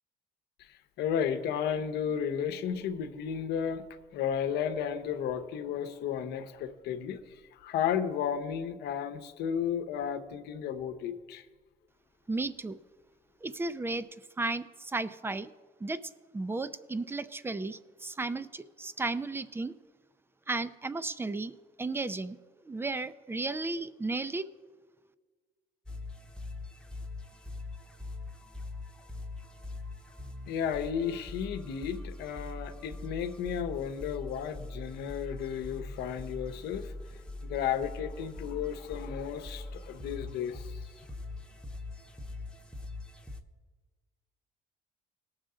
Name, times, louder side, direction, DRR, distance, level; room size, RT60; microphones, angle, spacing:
voice 1, 0.6-3.8 4.1-7.2 7.5-11.4 30.5-36.9 37.4-40.9, left 8 dB, 80° left, 9 dB, 0.9 m, -33 dB
voice 2, 12.3-12.8 13.4-14.1 14.4-15.5 15.8-16.0 16.3-19.7 20.5-22.4 22.6-24.5, right 3 dB, 15° right, 14 dB, 0.5 m, -34 dB
sound 1, 25.9-43.4, left 2 dB, 5° left, 0.9 m, -43 dB
18.5 x 6.4 x 3.8 m, 1.4 s
cardioid pair, 110°, 17 cm